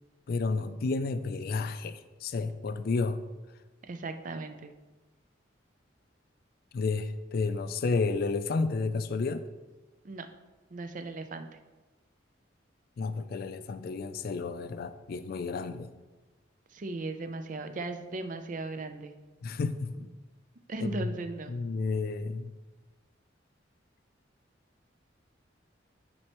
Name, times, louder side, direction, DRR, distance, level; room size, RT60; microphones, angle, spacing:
voice 1, 0.3-3.2 6.7-9.4 13.0-15.9 19.4-20.0 20.8-21.1 21.5-22.5, left 4 dB, 55° left, 12 dB, 0.3 m, -31 dB
voice 2, 3.9-4.7 10.0-10.3 10.7-11.5 16.7-19.1 20.0-20.1 20.7-21.6, right 3 dB, 45° right, 8 dB, 0.4 m, -37 dB
9.6 x 4.3 x 3.0 m, 1.2 s
head